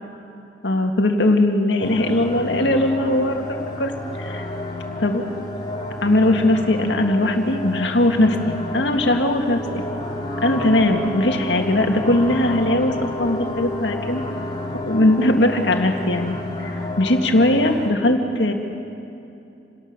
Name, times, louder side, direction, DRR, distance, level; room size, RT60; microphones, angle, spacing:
voice 1, 0.6-3.9 4.2-4.5 5.0-5.3 6.0-9.8 10.4-14.2 14.9-18.5, left 1 dB, 75° left, 4 dB, 2.0 m, -19 dB
sound 1, 1.8-17.9, left 1 dB, 25° left, 2.1 m, -30 dB
28.0 x 18.5 x 6.7 m, 2.7 s
head